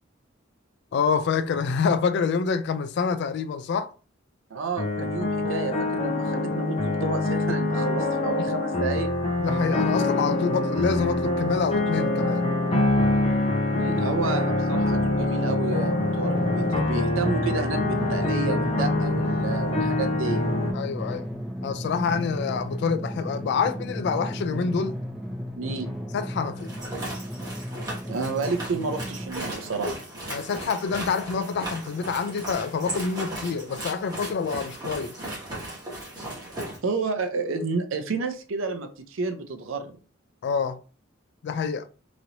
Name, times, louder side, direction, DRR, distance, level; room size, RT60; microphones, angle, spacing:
voice 1, 0.9-3.9 8.5-8.6 9.4-12.5 20.7-21.3 21.6-25.0 26.1-26.7 30.3-35.2 40.4-40.8 41.4-41.9, left 5 dB, 55° left, 0.3 m, -27 dB
voice 2, 4.5-9.1 13.7-20.5 25.6-25.9 28.1-30.0 36.8-40.0, right 4 dB, 75° right, 0.5 m, -30 dB
sound 1, 4.8-20.7, left 2 dB, 30° left, 0.8 m, -25 dB
Drum, 16.3-29.3, equal, ahead, 0.8 m, -34 dB
sound 2, 26.6-36.8, right 1 dB, 20° right, 1.3 m, -36 dB
3.0 x 2.8 x 2.6 m
head